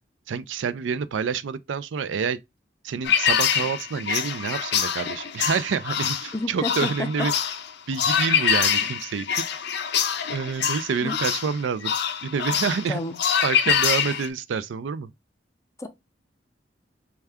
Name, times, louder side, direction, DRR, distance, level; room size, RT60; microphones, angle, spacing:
voice 1, 0.3-2.4 2.8-7.3 7.9-9.4 10.3-11.9 12.2-13.0 13.4-15.1, right 6 dB, 90° right, 0.4 m, -28 dB
sound 1, 3.0-14.3, left 8 dB, 65° left, 0.5 m, -25 dB
voice 2, 6.3-7.1 11.0-11.2 12.9-13.2 15.8-15.9, left 2 dB, 15° left, 0.5 m, -29 dB
4.4 x 2.3 x 3.4 m
head